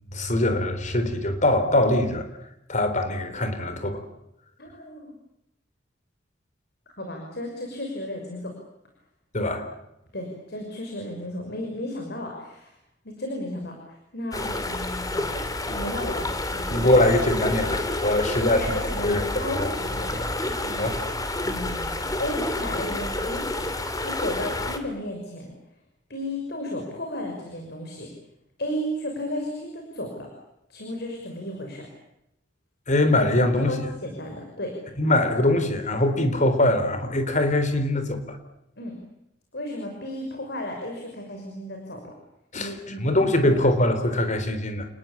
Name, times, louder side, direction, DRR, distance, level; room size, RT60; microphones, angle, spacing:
voice 1, 0.1-2.3 2.7-4.0 9.3-9.7 16.7-19.7 20.8-21.0 32.9-33.7 35.0-38.4 42.5-42.7 43.0-44.9, left 1 dB, 40° left, 8 dB, 4.0 m, -22 dB
voice 2, 4.6-5.2 7.0-8.5 10.1-12.7 13.0-15.3 15.7-17.0 18.1-21.1 21.4-21.9 22.2-23.6 24.0-25.5 26.1-28.1 28.6-30.3 30.7-31.9 33.7-34.8 38.8-39.0 39.5-42.1 42.6-43.6, left 1 dB, 60° left, 2 dB, 6.1 m, -34 dB
sound 1, 14.3-24.8, left 2 dB, 20° left, 2.7 m, -29 dB
30.0 x 20.0 x 8.7 m, 0.84 s
head